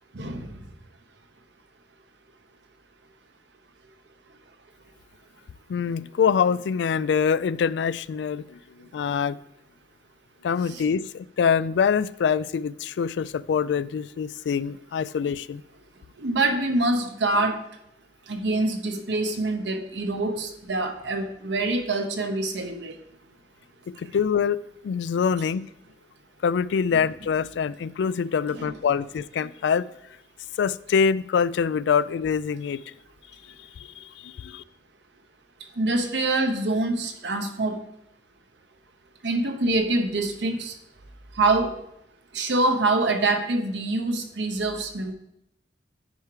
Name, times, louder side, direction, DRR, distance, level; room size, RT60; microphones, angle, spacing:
voice 1, 0.1-0.5 10.7-10.8 16.2-17.6 18.3-22.9 28.5-28.7 35.8-37.8 39.2-40.7 41.4-41.8 42.3-45.1, right 2 dB, 90° right, 6 dB, 1.0 m, -25 dB
voice 2, 5.7-8.6 8.9-9.4 10.4-15.6 24.0-25.6 26.4-29.9 30.6-32.8 33.8-34.6, left 6 dB, 85° left, 18 dB, 0.3 m, -25 dB
9.5 x 4.9 x 4.7 m, 0.81 s
head